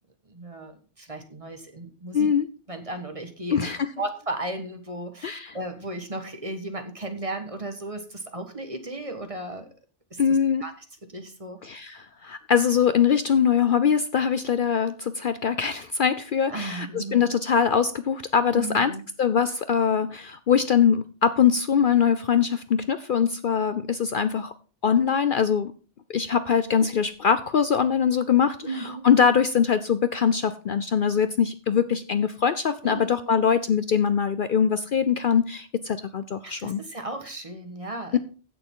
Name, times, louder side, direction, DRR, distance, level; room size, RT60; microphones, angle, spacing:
voice 1, 0.3-2.3 2.7-3.7 4.0-9.7 10.1-10.2 10.6-10.7 11.1-11.6 16.5-17.3 18.5-19.0 28.6-29.1 32.8-33.2 36.4-38.2, right 2 dB, 30° right, 6 dB, 1.5 m, -35 dB
voice 2, 2.1-2.5 3.5-3.9 5.2-5.6 10.2-10.6 11.6-18.9 19.2-24.5 24.8-25.7 26.1-36.8 38.1-38.2, left 7 dB, 55° left, 12 dB, 0.7 m, -22 dB
15.5 x 6.9 x 3.7 m, 0.36 s
omnidirectional pair, 1.2 m